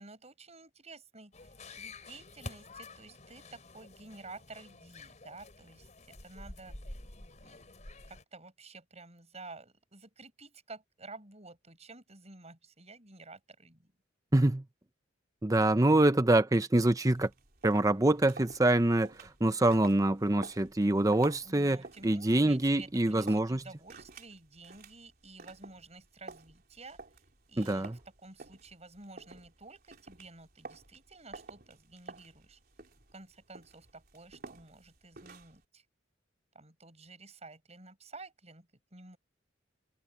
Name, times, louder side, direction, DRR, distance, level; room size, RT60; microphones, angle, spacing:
voice 1, 0.0-6.8 7.4-7.6 8.1-13.9 21.4-27.0 27.5-32.6 33.1-35.8 36.5-39.2, right 3 dB, 35° right, 7.3 m, -51 dB
sound 1, 1.3-8.2, left 2 dB, 40° left, 4.1 m, -49 dB
voice 2, 14.3-14.6 15.4-17.3 17.6-19.1 19.4-21.8 22.0-23.6 27.6-28.0, right 1 dB, 20° right, 0.7 m, -25 dB
sound 2, 17.1-35.6, right 3 dB, 50° right, 3.4 m, -51 dB
head